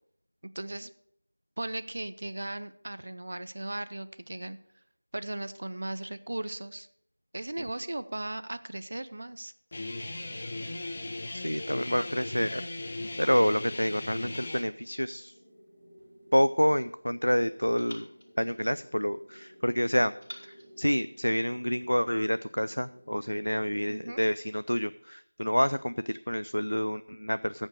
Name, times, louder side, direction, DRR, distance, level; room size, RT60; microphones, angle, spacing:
voice 1, 0.5-0.9 1.6-4.6 5.1-6.9 7.3-9.5 23.9-24.2, right 1 dB, 45° right, 13 dB, 0.6 m, -37 dB
Guitar, 9.7-14.6, left 2 dB, 25° left, 1.1 m, -37 dB
voice 2, 11.3-15.3 16.3-18.1 18.4-20.1 20.4-27.7, equal, 85° left, 14 dB, 0.3 m, -28 dB
sound 1, 14.5-24.0, equal, 5° right, 3.6 m, -55 dB
sound 2, 16.0-17.2 17.8-19.4 20.2-21.8, equal, 75° right, 5.6 m, -52 dB
9.8 x 7.2 x 6.4 m, 0.71 s
figure-of-eight pair, 170°, 0 cm